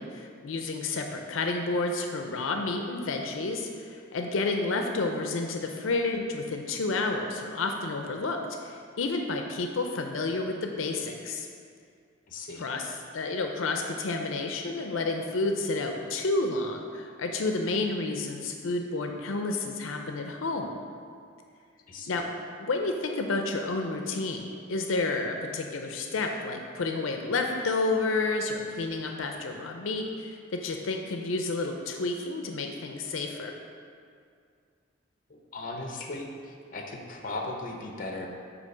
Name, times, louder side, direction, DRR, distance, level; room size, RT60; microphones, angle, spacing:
voice 1, 0.0-11.5 12.6-20.7 22.1-22.2 22.6-33.5, left 3 dB, 85° left, 3 dB, 0.5 m, -30 dB
voice 2, 12.3-12.6 21.9-22.2 35.3-38.3, left 2 dB, 45° left, 2 dB, 0.7 m, -37 dB
8.2 x 2.9 x 5.4 m, 2.2 s
head